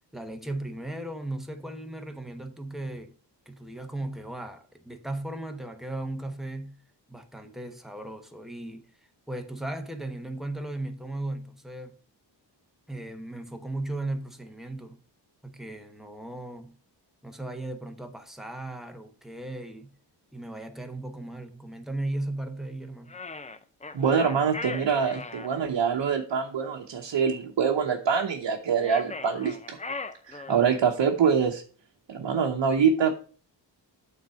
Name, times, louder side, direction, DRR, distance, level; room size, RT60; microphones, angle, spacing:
voice 1, 0.1-3.1 3.5-6.8 7.1-8.9 9.3-12.0 12.9-15.0 15.4-16.8 17.2-19.9 20.3-23.2 30.5-30.6, right 1 dB, ahead, 0.9 m, -36 dB
sound 1, 23.1-25.5 28.7-30.8, left 3 dB, 15° left, 0.4 m, -38 dB
voice 2, 23.9-29.8 30.3-31.6 32.1-33.1, right 6 dB, 80° right, 0.9 m, -25 dB
9.0 x 4.0 x 5.5 m
wide cardioid pair, 125°, 43 cm